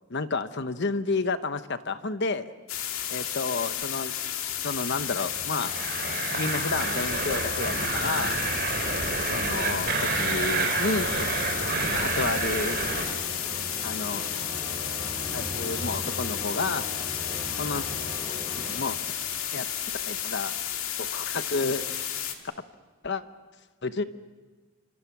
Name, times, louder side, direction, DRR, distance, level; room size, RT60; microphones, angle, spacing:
voice 1, 0.1-2.5 3.1-4.2 4.6-5.7 6.3-8.5 9.3-11.4 11.9-12.8 13.8-14.3 15.3-16.9 17.6-17.9 18.6-19.0 19.5-19.7 20.1-20.5 21.0-22.0 23.0-23.2 23.8-24.0, left 3 dB, 55° left, 11 dB, 1.0 m, -30 dB
sound 1, 2.7-22.3, left 10 dB, 75° left, 2.1 m, -32 dB
sound 2, 4.3-20.0, equal, 5° left, 6.9 m, -41 dB
sound 3, 4.9-13.1, right 4 dB, 45° right, 3.8 m, -29 dB
27.0 x 25.5 x 6.1 m, 1.4 s
head